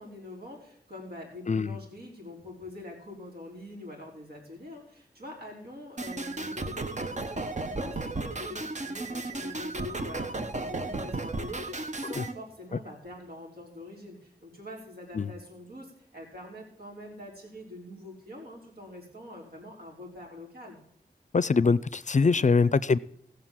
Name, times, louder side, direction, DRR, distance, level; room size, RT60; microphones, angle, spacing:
voice 1, 0.0-20.8, left 1 dB, 75° right, 4.9 m, -45 dB
voice 2, 1.5-1.8 12.2-12.3 15.1-15.3 21.3-23.0, left 4 dB, 50° left, 0.5 m, -23 dB
sound 1, 6.0-12.3, right 2 dB, 45° right, 1.1 m, -34 dB
17.0 x 6.6 x 7.5 m
wide cardioid pair, 60°, 16 cm